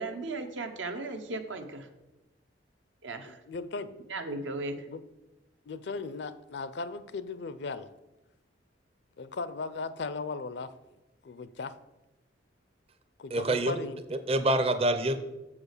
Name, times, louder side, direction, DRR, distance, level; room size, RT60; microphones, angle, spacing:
voice 1, 0.0-1.9 3.0-3.4 4.1-4.9, right 2 dB, 80° right, 7 dB, 0.9 m, -36 dB
voice 2, 3.5-4.0 4.9-5.0 5.7-7.9 9.2-10.7 11.2-11.7 13.2-14.0, left 4 dB, 60° left, 14 dB, 0.4 m, -37 dB
voice 3, 13.3-13.8 14.1-15.2, right 1 dB, 30° right, 9 dB, 0.6 m, -26 dB
7.2 x 4.9 x 6.5 m, 1.0 s
head